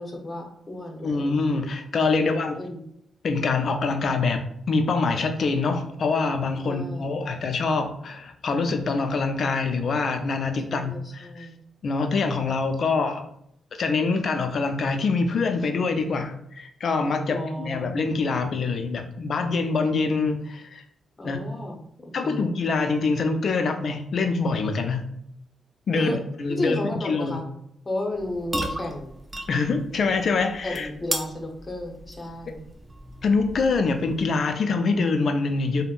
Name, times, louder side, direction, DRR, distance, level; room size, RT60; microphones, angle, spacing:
voice 1, 0.0-1.7 2.1-2.8 6.6-7.1 10.7-11.5 17.3-18.0 21.2-21.8 22.2-22.5 25.9-26.2 26.5-27.4 27.8-29.2 30.6-32.6, left 1 dB, 30° left, 2 dB, 0.8 m, -33 dB
voice 2, 1.0-2.6 3.2-11.5 11.8-13.3 13.7-20.8 21.2-21.4 22.1-25.0 25.9-27.4 29.5-30.9 33.2-35.8, left 4 dB, 60° left, 6 dB, 0.4 m, -25 dB
sound 1, 28.1-34.5, right 1 dB, 25° right, 0.4 m, -36 dB
3.4 x 2.1 x 2.4 m, 0.74 s
supercardioid pair, 50°, 0 cm